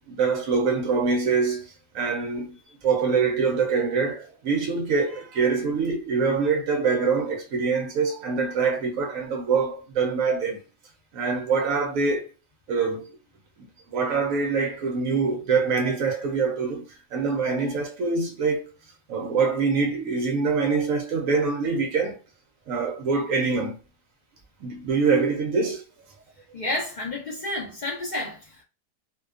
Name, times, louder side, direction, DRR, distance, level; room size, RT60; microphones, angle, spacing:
voice 1, 0.1-2.6 2.8-10.6 11.1-12.3 12.7-13.1 13.9-18.6 19.1-22.2 22.7-23.8 24.6-25.8, right 4 dB, 70° right, 0.8 m, -24 dB
voice 2, 26.5-28.6, left 2 dB, 55° left, 0.5 m, -30 dB
2.6 x 2.2 x 2.3 m
omnidirectional pair, 1.7 m